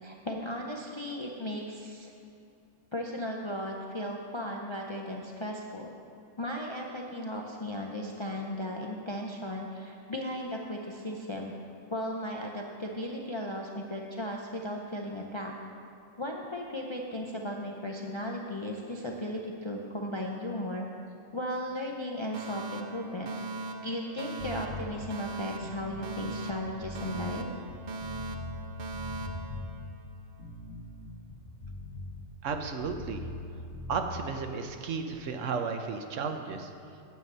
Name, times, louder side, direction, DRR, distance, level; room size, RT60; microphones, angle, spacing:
voice 1, 0.0-2.1 2.9-5.9 6.4-11.5 11.9-15.5 16.2-20.9 21.3-23.3 23.8-27.5, left 1 dB, 35° left, 0 dB, 0.4 m, -36 dB
Alarm, 22.3-30.4, right 3 dB, 55° right, 0.5 m, -40 dB
sound 1, 24.4-25.0 25.5-28.7 28.9-29.8 30.3-33.5 33.7-34.0, left 2 dB, 75° left, 1.7 m, -41 dB
voice 2, 32.4-33.3 33.9-36.7, right 5 dB, 70° right, 5 dB, 1.0 m, -33 dB
9.5 x 7.4 x 5.4 m, 2.6 s
omnidirectional pair, 1.4 m